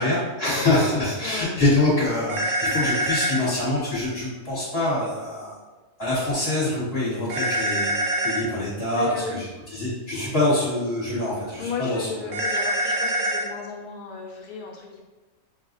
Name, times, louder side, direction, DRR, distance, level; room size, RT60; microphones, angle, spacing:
voice 1, 0.0-5.5 6.0-7.9 8.2-9.4 9.7-12.3, left 2 dB, 45° left, -10 dB, 1.7 m, -25 dB
sound 1, 2.3-3.4 7.3-8.5 12.3-13.5, right 1 dB, 65° right, 0.9 m, -25 dB
voice 2, 9.0-9.5 11.6-15.0, left 5 dB, 85° left, -1 dB, 1.3 m, -34 dB
5.4 x 2.4 x 2.6 m, 1.3 s
omnidirectional pair, 1.6 m